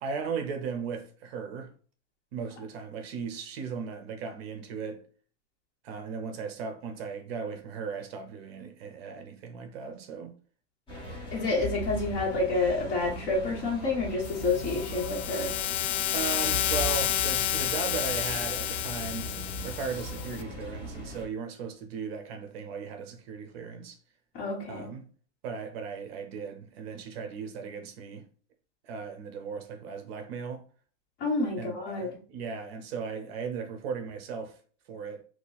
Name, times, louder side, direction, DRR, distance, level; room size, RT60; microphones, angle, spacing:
voice 1, 0.0-1.7 2.3-5.0 5.8-10.3 16.1-19.3 19.6-24.0 24.7-25.0 25.4-28.2 28.8-30.6 31.6-34.6 34.9-35.2, right 5 dB, 55° right, 0.7 m, -37 dB
sound 1, 10.9-21.2, equal, 15° left, 1.6 m, -39 dB
voice 2, 11.3-15.5 24.3-24.9 31.2-32.1, left 3 dB, 30° left, 1.3 m, -29 dB
sound 2, 14.2-20.4, left 11 dB, 65° left, 0.5 m, -30 dB
2.9 x 2.5 x 3.9 m
supercardioid pair, 155°, 36 cm